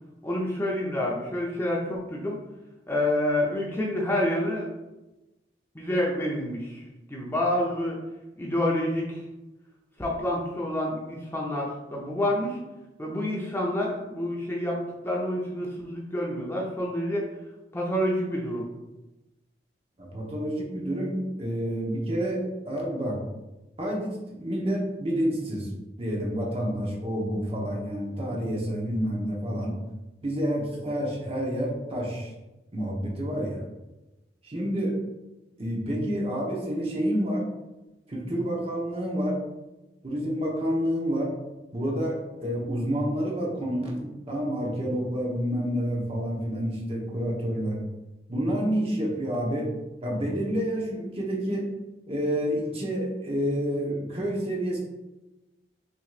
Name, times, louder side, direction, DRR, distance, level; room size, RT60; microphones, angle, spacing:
voice 1, 0.2-2.4 2.9-4.7 5.7-6.8 7.1-8.0 8.4-9.2 10.0-12.6 13.0-14.8 15.0-17.3 17.7-18.6, left 1 dB, 15° left, -3 dB, 0.6 m, -28 dB
voice 2, 20.0-23.2 23.8-25.7 26.0-29.7 30.2-32.3 32.7-33.6 34.4-34.9 35.6-37.5 38.1-39.4 40.0-41.3 41.7-47.8 48.3-49.7 50.0-51.7 52.1-54.8, equal, 35° right, -3 dB, 1.0 m, -29 dB
6.0 x 3.0 x 2.4 m, 1.0 s
head